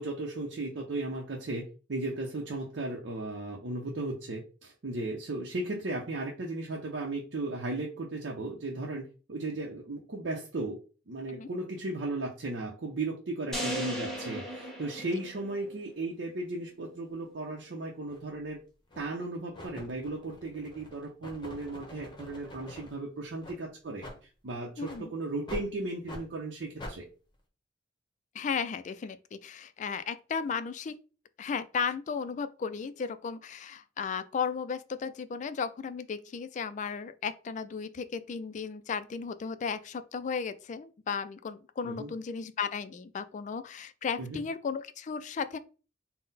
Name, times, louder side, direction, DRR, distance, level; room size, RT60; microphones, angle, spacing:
voice 1, 0.0-10.8 11.1-18.6 19.0-24.0 24.4-27.0 41.8-42.1 44.2-44.4, right 2 dB, 75° right, 0.6 m, -36 dB
sound 1, 13.5-15.8, equal, 5° left, 1.2 m, -36 dB
sound 2, 18.1-18.2 18.9-19.2 19.5-22.9 23.4-23.6 24.0-24.2 24.8-25.0 25.5-25.7 26.1-26.2 26.8-27.0, left 1 dB, 25° left, 0.9 m, -44 dB
voice 2, 24.8-25.1 28.3-31.0 31.4-45.6, left 6 dB, 40° left, 0.3 m, -35 dB
3.8 x 2.1 x 4.0 m
head